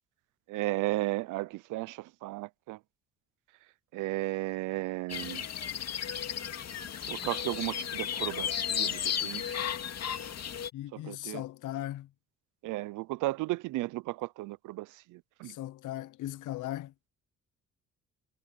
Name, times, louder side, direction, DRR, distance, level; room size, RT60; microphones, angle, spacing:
voice 1, 0.5-2.8 3.9-5.5 7.1-9.6 10.9-11.4 12.6-15.6, right 19 dB, 90° right, 0.5 m, -34 dB
sound 1, 5.1-10.7, left 9 dB, 60° left, 2.5 m, -34 dB
voice 2, 10.7-12.1 15.4-16.9, left 14 dB, 85° left, 0.9 m, -38 dB
cardioid pair, 90°, 30 cm